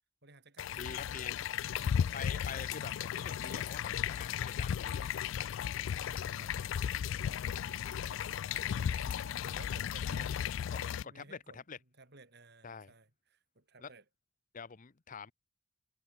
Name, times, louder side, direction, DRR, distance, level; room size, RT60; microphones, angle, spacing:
voice 1, 0.2-1.0 6.0-11.6 12.0-14.0, right 2 dB, 60° right, 6.1 m, -58 dB
sound 1, 0.6-11.0, left 8 dB, 70° left, 0.3 m, -35 dB
voice 2, 0.7-1.3 1.8-5.1 10.1-10.3 10.7-11.8 12.6-12.9 13.8-13.9 14.5-15.3, left 6 dB, 40° left, 0.7 m, -46 dB
head